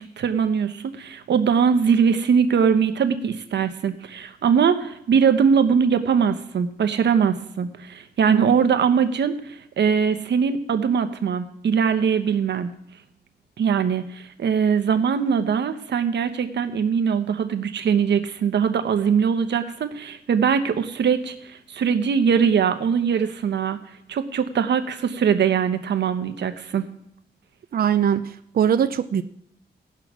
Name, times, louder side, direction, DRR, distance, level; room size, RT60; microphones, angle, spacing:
voice 1, 0.0-12.7 13.6-23.8 24.1-26.8, right 6 dB, 75° right, 8 dB, 1.0 m, -21 dB
voice 2, 27.7-29.2, right 8 dB, 55° right, 10 dB, 0.5 m, -21 dB
17.0 x 5.8 x 6.1 m, 0.74 s
cardioid pair, 95°, 18 cm